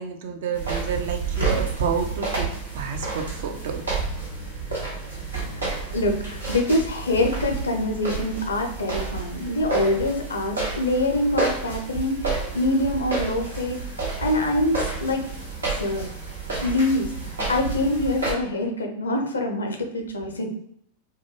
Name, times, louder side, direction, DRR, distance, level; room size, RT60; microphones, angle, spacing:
voice 1, 0.0-2.5 2.7-3.9, right 6 dB, 55° right, 4 dB, 0.4 m, -29 dB
sound 1, 0.5-18.3, right 4 dB, 80° right, 1.0 m, -30 dB
voice 2, 5.5-12.3 12.5-13.8 14.2-15.2 15.8-16.1 16.6-20.5, left 1 dB, 70° left, 3 dB, 0.5 m, -25 dB
2.3 x 2.1 x 2.9 m, 0.72 s
figure-of-eight pair, 90°, 0 cm